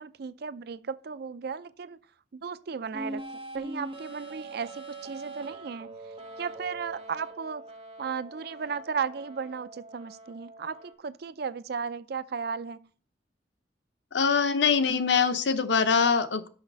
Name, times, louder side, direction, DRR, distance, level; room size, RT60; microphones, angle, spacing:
voice 1, 0.0-2.0 2.3-3.2 3.5-6.0 6.4-7.6 8.0-12.8, right 6 dB, 65° right, 0.5 m, -35 dB
sound 1, 2.9-10.9, right 2 dB, 30° right, 1.0 m, -43 dB
voice 2, 14.1-16.5, left 5 dB, 85° left, 0.8 m, -23 dB
5.8 x 5.8 x 5.4 m
head